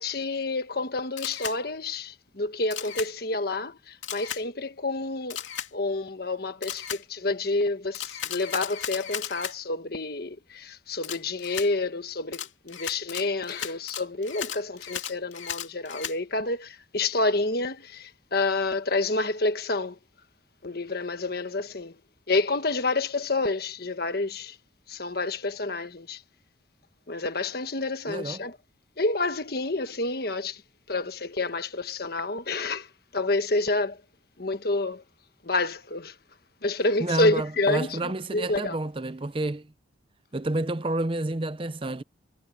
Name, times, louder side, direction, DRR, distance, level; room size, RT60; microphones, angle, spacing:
voice 1, 0.0-5.4 5.7-20.0 20.6-21.9 22.3-24.6 24.9-26.2 27.1-28.5 29.0-30.6 30.9-32.9 33.1-34.0 34.4-35.0 35.4-36.1 36.6-38.8, left 2 dB, 50° left, 1.4 m, -28 dB
Camera, 1.2-1.6 2.7-3.1 4.0-4.4 5.3-5.7 6.6-7.0 7.9-9.5 11.0-11.7 12.3-16.2, left 10 dB, 80° left, 2.5 m, -35 dB
voice 2, 28.1-28.5 37.0-39.7 40.3-42.0, right 2 dB, 25° right, 0.6 m, -29 dB
head